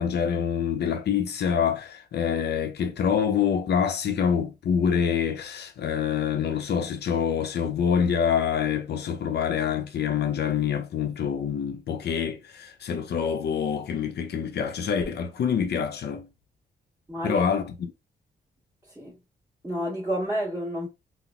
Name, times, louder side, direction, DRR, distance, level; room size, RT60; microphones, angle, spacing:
voice 1, 0.0-16.3 17.2-17.7, left 7 dB, 65° left, 0.7 m, -26 dB
voice 2, 17.1-17.4 18.9-19.2 19.6-20.9, equal, 10° right, 1.3 m, -29 dB
4.1 x 2.1 x 2.2 m
cardioid pair, 95°, 19 cm